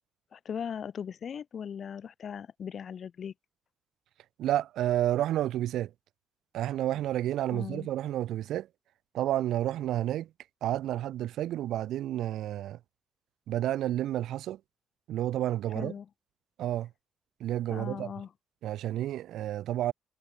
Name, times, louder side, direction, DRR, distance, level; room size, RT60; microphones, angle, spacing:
voice 1, 0.3-3.3 7.5-7.9 15.7-16.1 17.7-18.3, left 7 dB, 40° left, 6.3 m, -38 dB
voice 2, 4.4-5.9 6.5-8.7 9.1-10.3 10.6-12.8 13.5-14.6 15.1-15.9 16.6-16.9 17.4-18.1 18.6-19.9, right 13 dB, 85° right, 3.6 m, -30 dB
cardioid pair, 170°, 0 cm